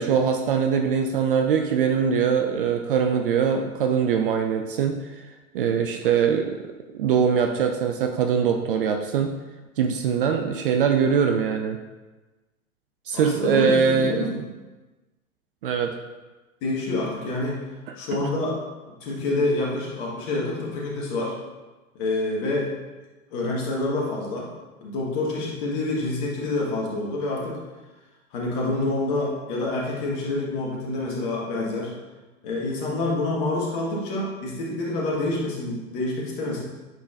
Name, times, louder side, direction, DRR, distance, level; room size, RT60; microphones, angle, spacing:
voice 1, 0.0-5.0 5.5-6.6 6.9-9.3 9.8-11.8 13.1-14.3 15.6-16.0, right 7 dB, 40° right, 4 dB, 0.4 m, -22 dB
voice 2, 13.1-14.4 16.6-17.6 17.9-18.5 19.0-21.3 21.9-22.7 23.3-24.5 24.8-27.6 28.3-31.9 32.4-36.6, left 2 dB, 40° left, -3 dB, 1.7 m, -27 dB
9.4 x 3.9 x 2.6 m, 1.2 s
figure-of-eight pair, 95°, 42 cm